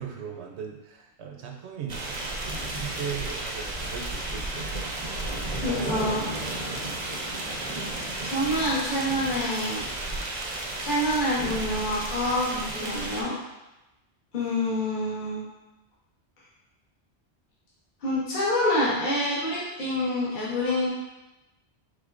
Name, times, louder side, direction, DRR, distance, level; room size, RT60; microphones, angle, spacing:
voice 1, 0.0-2.4 2.7-4.7, right 7 dB, 75° right, 1 dB, 0.9 m, -38 dB
sound 1, 1.9-13.2, right 2 dB, 40° right, 0.6 m, -33 dB
voice 2, 5.6-6.3 8.2-9.8 10.8-13.3 14.3-15.4 18.0-20.9, left 1 dB, 45° left, -8 dB, 1.1 m, -27 dB
4.9 x 3.8 x 2.5 m, 0.99 s
omnidirectional pair, 1.2 m